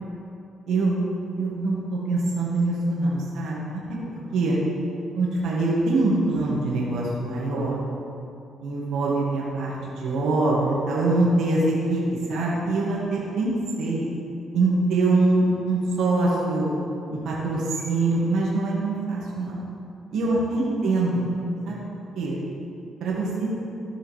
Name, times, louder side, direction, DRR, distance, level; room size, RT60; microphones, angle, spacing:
voice 1, 0.7-1.1 1.4-3.6 4.1-4.6 5.2-7.7 8.6-13.5 13.8-14.1 14.5-16.7 17.1-19.6 20.1-21.3 21.7-21.8 22.2-22.3 23.0-23.5, right 2 dB, 80° right, -5 dB, 1.7 m, -24 dB
13.5 x 5.0 x 3.2 m, 2.7 s
cardioid pair, 90°, 0 cm